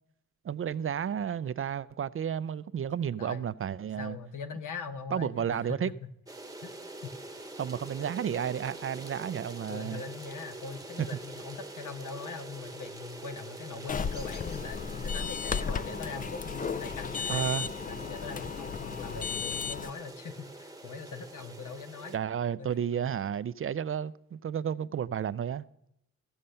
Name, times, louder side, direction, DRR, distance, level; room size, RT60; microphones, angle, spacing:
voice 1, 0.4-4.2 5.1-5.9 7.6-10.0 17.3-17.7 22.1-25.7, right 8 dB, 45° right, 0.4 m, -32 dB
voice 2, 4.0-6.1 6.6-6.7 7.0-7.2 9.7-17.5 17.9-22.1 22.6-23.1, left 5 dB, 80° left, 1.1 m, -42 dB
sound 1, 6.3-22.2, right 2 dB, 10° right, 1.0 m, -45 dB
sound 2, 13.9-19.9, left 6 dB, 30° left, 0.3 m, -34 dB
15.0 x 6.5 x 5.6 m
cardioid pair, 90°, 31 cm